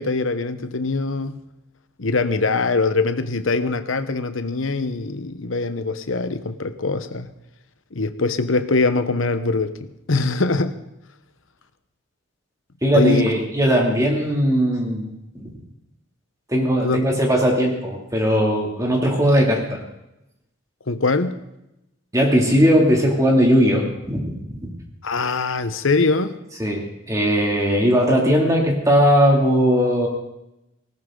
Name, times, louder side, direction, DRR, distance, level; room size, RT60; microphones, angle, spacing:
voice 1, 0.0-1.4 2.0-7.3 7.9-9.8 10.1-10.7 12.9-13.3 16.8-17.0 20.9-21.4 25.0-26.4, left 3 dB, 80° left, 10 dB, 1.1 m, -22 dB
voice 2, 12.8-15.5 16.5-19.8 22.1-24.7 26.6-30.1, equal, 15° right, -1 dB, 2.7 m, -19 dB
19.0 x 18.0 x 3.9 m, 0.88 s
head